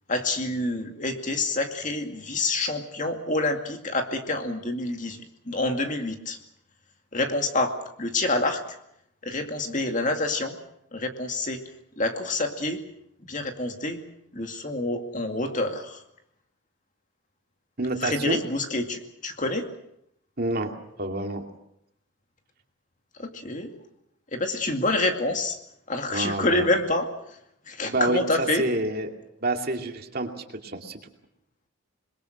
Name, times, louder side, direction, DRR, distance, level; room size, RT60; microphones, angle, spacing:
voice 1, 0.1-6.4 7.1-8.6 9.2-10.6 10.9-11.6 12.0-12.8 13.2-14.0 14.3-16.0 18.0-19.7 23.2-23.7 24.3-25.6 25.9-27.1 27.7-28.7, left 2 dB, 35° left, 4 dB, 2.3 m, -27 dB
voice 2, 17.8-18.4 20.4-20.7 21.0-21.4 26.1-26.7 27.8-30.3 30.6-31.0, right 2 dB, 45° right, 3 dB, 2.5 m, -28 dB
27.0 x 22.0 x 6.4 m, 0.77 s
head